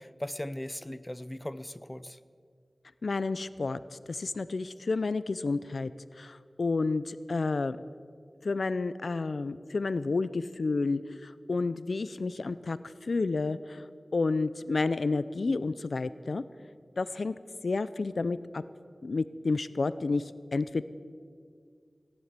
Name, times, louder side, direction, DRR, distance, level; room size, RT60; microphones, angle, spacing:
voice 1, 0.0-2.2, left 1 dB, 20° left, 14 dB, 0.6 m, -38 dB
voice 2, 3.0-3.8 4.1-5.9 6.2-7.8 8.4-13.8 14.1-16.4 17.0-17.3 17.6-18.6 19.0-20.8, left 3 dB, 85° left, 15 dB, 0.4 m, -30 dB
17.5 x 11.0 x 6.7 m, 2.1 s
wide cardioid pair, 60°, 0 cm